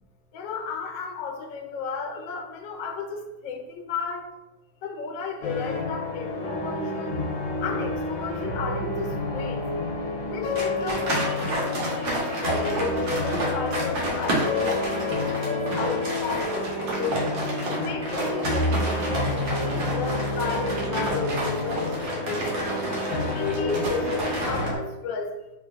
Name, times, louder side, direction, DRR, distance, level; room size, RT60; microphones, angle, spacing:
voice 1, 0.3-4.3 4.8-7.2 7.6-9.7 10.3-17.3 17.8-22.7 23.3-25.4, left 5 dB, 90° left, 3 dB, 1.3 m, -33 dB
sound 1, 5.4-24.8, left 2 dB, 65° left, 0.9 m, -29 dB
sound 2, 10.6-24.7, right 1 dB, 80° right, 1.6 m, -30 dB
3.9 x 3.5 x 2.3 m, 1.0 s
omnidirectional pair, 2.0 m